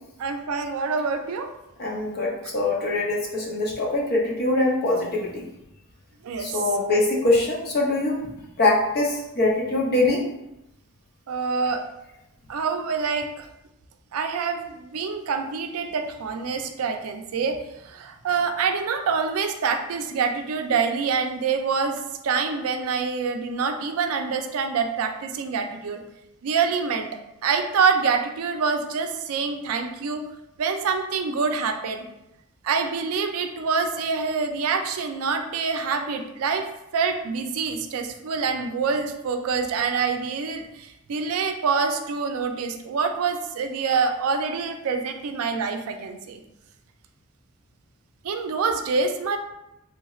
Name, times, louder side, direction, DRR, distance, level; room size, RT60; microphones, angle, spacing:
voice 1, 0.2-1.5 6.2-6.6 11.3-11.8 12.5-13.5 14.1-26.0 26.4-27.1 27.4-30.2 30.6-32.1 32.6-46.4 48.2-49.4, right 5 dB, 75° right, 5 dB, 0.4 m, -26 dB
voice 2, 1.8-5.4 6.4-8.3 8.6-10.2, left 2 dB, 45° left, -2 dB, 0.6 m, -23 dB
3.3 x 3.0 x 2.3 m, 0.88 s
head